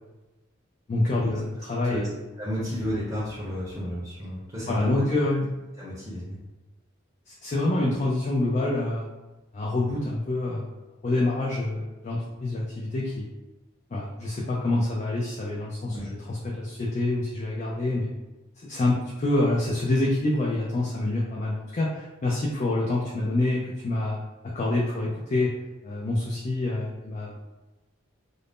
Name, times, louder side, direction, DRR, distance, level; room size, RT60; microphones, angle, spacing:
voice 1, 0.9-2.0 4.7-5.5 7.3-9.1 9.5-10.7 11.0-13.3 13.9-16.0 16.3-18.1 18.6-25.5 25.8-27.4, left 2 dB, 35° left, -4 dB, 0.3 m, -26 dB
voice 2, 2.4-5.4 5.8-6.4 9.8-10.0 15.9-16.1, equal, 15° right, -8 dB, 0.7 m, -32 dB
2.5 x 2.0 x 3.4 m, 1.1 s
head